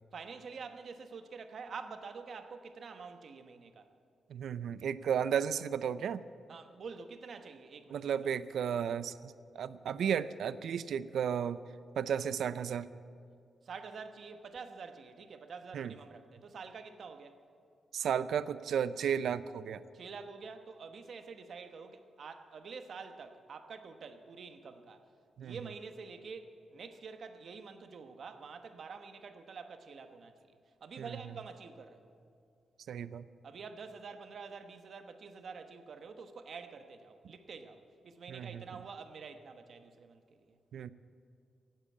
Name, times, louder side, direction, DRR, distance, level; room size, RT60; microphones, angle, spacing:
voice 1, 0.1-3.9 6.5-8.1 13.6-17.4 19.9-25.0 25.4-32.1 33.4-40.6, right 5 dB, 55° right, 8 dB, 1.1 m, -47 dB
voice 2, 4.3-6.2 7.9-11.6 12.0-12.9 15.7-15.9 17.9-19.8 25.4-25.6 31.0-31.2 32.9-33.2 38.3-38.6 40.7-40.9, right 8 dB, 75° right, 16 dB, 0.5 m, -34 dB
16.0 x 9.0 x 8.6 m, 2.4 s
wide cardioid pair, 145°, 0 cm